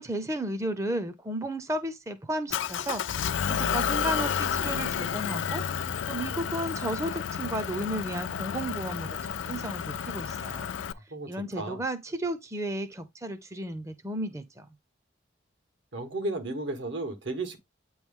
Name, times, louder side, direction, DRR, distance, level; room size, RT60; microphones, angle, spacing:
voice 1, 0.0-10.7 11.3-14.7, right 1 dB, 15° right, 0.5 m, -34 dB
Motor vehicle (road) / Engine, 2.5-10.9, left 8 dB, 80° left, 0.4 m, -31 dB
voice 2, 11.1-11.8 15.9-17.6, right 2 dB, 80° right, 1.4 m, -34 dB
8.5 x 3.1 x 3.6 m
head